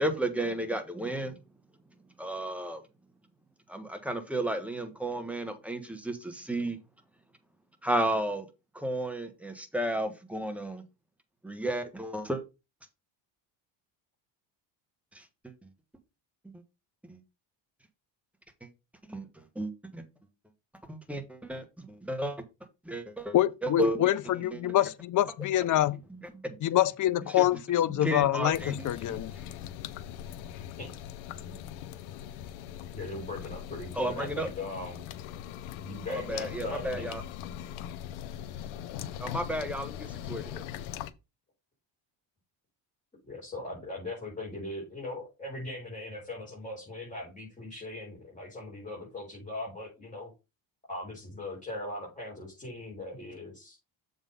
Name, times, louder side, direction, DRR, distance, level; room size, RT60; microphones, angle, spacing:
voice 1, 0.0-1.4 2.2-2.8 3.7-6.8 7.8-8.5 8.7-10.8 11.4-12.4 15.1-15.2 17.1-17.2 19.1-19.3 19.5-20.0 20.9-22.4 22.8-23.3 23.6-24.0 24.5-24.6 26.1-26.6 27.4-27.5 27.9-29.2 31.4-31.6 34.0-34.5 36.1-37.2 39.2-40.6, right 1 dB, 5° right, 1.3 m, -33 dB
voice 2, 23.3-26.0 26.6-29.3, left 13 dB, 40° left, 0.6 m, -26 dB
sound 1, 28.5-41.1, left 10 dB, 90° left, 0.8 m, -41 dB
voice 3, 32.9-35.0 35.8-37.1 43.2-50.3 50.9-53.8, left 2 dB, 15° left, 4.4 m, -40 dB
7.1 x 3.9 x 5.4 m
cardioid pair, 115°, 47 cm